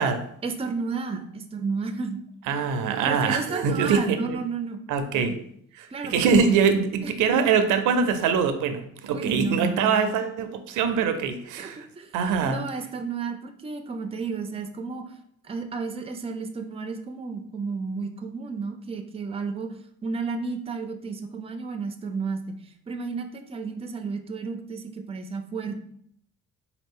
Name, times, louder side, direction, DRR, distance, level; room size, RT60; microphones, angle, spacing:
voice 1, 0.4-2.2 2.5-2.6 3.1-4.8 5.1-5.4 5.9-6.7 7.0-7.1 9.1-10.2 11.6-12.1 12.4-15.1 15.4-19.8 20.0-25.8, right 4 dB, 20° right, 7 dB, 0.4 m, -32 dB
voice 2, 2.5-4.4 4.9-5.4 5.7-11.9 12.1-12.6, right 6 dB, 90° right, 8 dB, 0.5 m, -23 dB
4.2 x 2.3 x 3.6 m, 0.67 s
cardioid pair, 90°, 30 cm